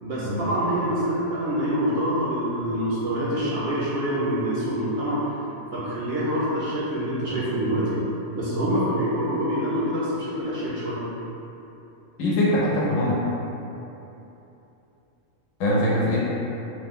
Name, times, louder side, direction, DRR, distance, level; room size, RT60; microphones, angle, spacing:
voice 1, 0.0-5.2 5.7-8.0 8.3-11.0, equal, 65° right, -7 dB, 0.7 m, -26 dB
voice 2, 12.2-13.2 15.6-16.2, left 1 dB, 80° left, -6 dB, 1.1 m, -22 dB
3.1 x 2.1 x 3.6 m, 3.0 s
omnidirectional pair, 1.4 m